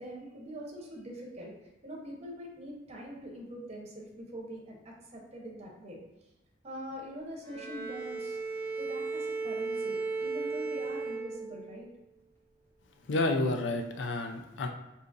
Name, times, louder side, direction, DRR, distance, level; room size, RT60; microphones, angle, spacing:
voice 1, 0.0-1.5 1.8-6.0 6.6-8.4 8.8-11.9, equal, 35° right, -1 dB, 0.7 m, -43 dB
Bowed string instrument, 7.4-11.9, right 4 dB, 10° left, 0.7 m, -35 dB
voice 2, 13.1-14.7, left 2 dB, 85° left, 5 dB, 0.4 m, -30 dB
2.7 x 2.4 x 3.8 m, 0.98 s
head